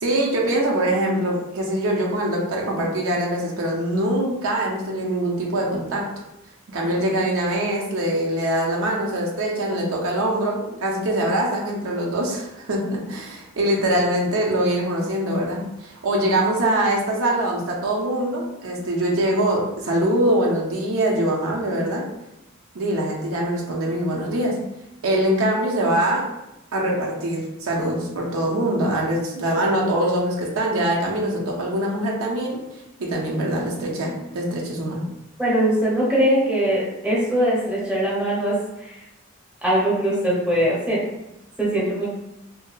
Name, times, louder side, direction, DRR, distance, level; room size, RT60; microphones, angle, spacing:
voice 1, 0.0-6.1 6.7-22.0 22.7-24.6 25.0-26.2 26.7-32.6 33.0-35.0, right 1 dB, 80° right, -2 dB, 0.5 m, -23 dB
voice 2, 35.4-38.5 38.8-38.9 39.6-41.0 41.6-42.1, right 1 dB, 5° right, -7 dB, 0.8 m, -21 dB
2.6 x 2.2 x 2.3 m, 0.90 s
head